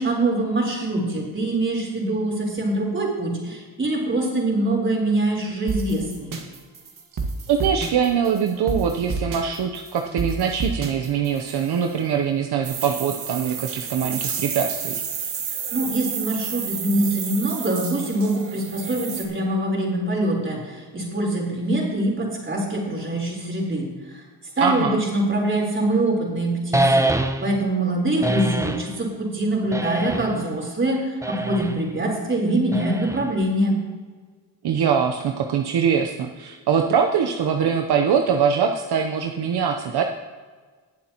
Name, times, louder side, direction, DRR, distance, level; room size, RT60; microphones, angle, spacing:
voice 1, 0.0-6.3 15.7-23.9 24.1-24.2 24.6-27.1 27.4-31.0 31.3-33.8, right 1 dB, 30° right, -1 dB, 3.9 m, -24 dB
sound 1, 5.7-12.0, right 3 dB, 50° right, 1.7 m, -31 dB
voice 2, 7.5-15.0 24.6-25.0 34.6-40.0, right 7 dB, 65° right, 4 dB, 0.9 m, -23 dB
sound 2, 12.6-19.2, right 7 dB, 85° right, 1.8 m, -31 dB
sound 3, 26.7-27.6 28.2-28.9 29.7-30.5 31.2-31.8 32.7-33.4, right 1 dB, 5° right, 0.8 m, -24 dB
19.5 x 7.6 x 3.0 m, 1.4 s
cardioid pair, 80°, 41 cm